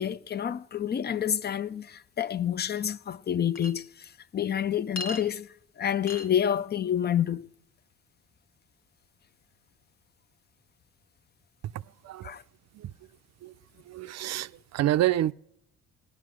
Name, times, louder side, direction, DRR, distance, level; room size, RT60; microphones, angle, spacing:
voice 1, 0.0-7.5 12.2-12.4, left 9 dB, 35° left, 0.5 m, -29 dB
Chink clink, 3.6-3.7 5.0-5.2 6.1-6.3, left 2 dB, 60° left, 1.3 m, -35 dB
voice 2, 11.6-12.3 12.7-12.9 13.4-13.5 13.8-15.3, right 14 dB, 60° right, 0.5 m, -28 dB
18.0 x 10.0 x 6.2 m
cardioid pair, 90°, 30 cm